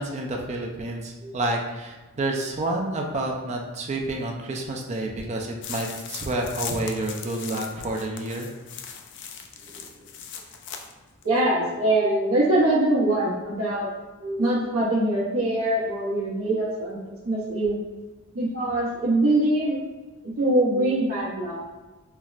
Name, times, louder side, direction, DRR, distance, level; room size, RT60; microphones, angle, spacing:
voice 1, 0.0-8.5, right 2 dB, 30° right, 0 dB, 0.4 m, -29 dB
sound 1, 5.6-10.9 11.2-11.3, left 7 dB, 55° left, 0.3 m, -39 dB
voice 2, 11.2-13.9 14.2-17.8 18.3-19.8 20.4-21.6, right 1 dB, 70° right, -6 dB, 0.9 m, -23 dB
5.7 x 2.0 x 2.4 m, 1.2 s
head